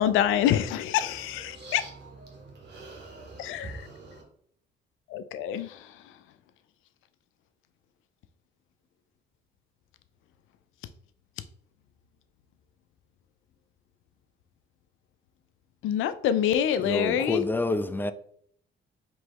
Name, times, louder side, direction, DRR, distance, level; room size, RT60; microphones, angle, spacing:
voice 1, 0.0-1.2 1.7-1.8 3.5-3.7 5.3-5.7 15.8-17.5, left 10 dB, 85° left, 0.4 m, -25 dB
voice 2, 0.8-4.2, right 3 dB, 60° right, 1.7 m, -45 dB
voice 3, 16.9-18.1, left 2 dB, 10° left, 0.3 m, -28 dB
4.6 x 3.1 x 3.0 m
cardioid pair, 90°, 20 cm